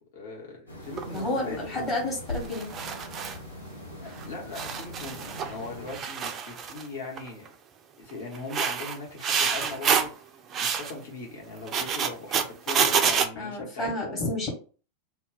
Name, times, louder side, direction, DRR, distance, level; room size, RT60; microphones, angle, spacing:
voice 1, 0.1-2.0 4.0-7.5 8.0-10.1 10.6-14.2, left 3 dB, 55° left, -1 dB, 1.0 m, -40 dB
sound 1, 0.7-6.0, left 1 dB, 85° left, 0.7 m, -41 dB
sound 2, 1.0-1.2 2.4-3.4 4.2-4.3 4.5-5.6 5.9-6.9 7.2-7.5 8.3-10.1 10.5-10.9 11.6-13.3, right 7 dB, 30° right, 0.4 m, -27 dB
voice 2, 1.1-2.7 13.4-14.5, left 1 dB, 25° left, -4 dB, 1.1 m, -30 dB
2.3 x 2.1 x 3.7 m, 0.37 s
figure-of-eight pair, 90°, 0 cm